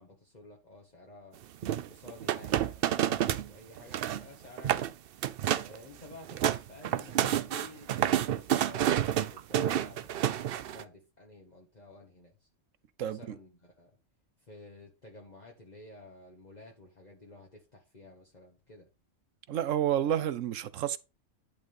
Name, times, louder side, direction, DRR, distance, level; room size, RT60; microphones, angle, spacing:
voice 1, 0.0-1.4 1.9-4.9 5.6-12.5 13.0-14.0 14.4-18.9, left 2 dB, 35° left, 1.6 m, -52 dB
sound 1, 1.6-3.5 3.8-4.2 4.6-4.9 5.2-5.8 6.1-10.8, right 11 dB, 60° right, 0.7 m, -29 dB
voice 2, 19.5-21.0, right 10 dB, 90° right, 1.1 m, -29 dB
10.5 x 3.8 x 5.3 m
omnidirectional pair, 1.3 m